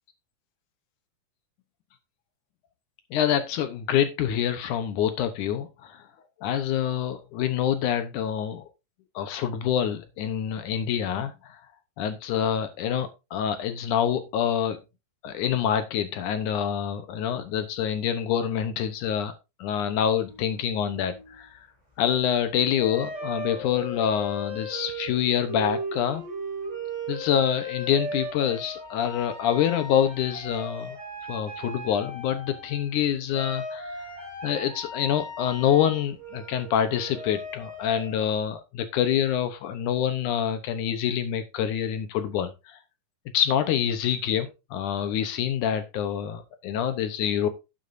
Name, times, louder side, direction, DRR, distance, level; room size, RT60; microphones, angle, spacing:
voice 1, 3.1-6.0 6.4-8.6 9.2-11.6 12.0-14.8 15.2-19.3 19.6-21.6 22.0-26.2 27.1-31.0 31.3-34.1 34.4-42.8 43.3-47.5, left 9 dB, 70° left, 10 dB, 2.1 m, -26 dB
sound 1, 20.3-21.5 22.7-33.0 33.3-38.3, equal, 10° right, 3.2 m, -37 dB
11.5 x 8.7 x 2.6 m, 0.26 s
omnidirectional pair, 4.2 m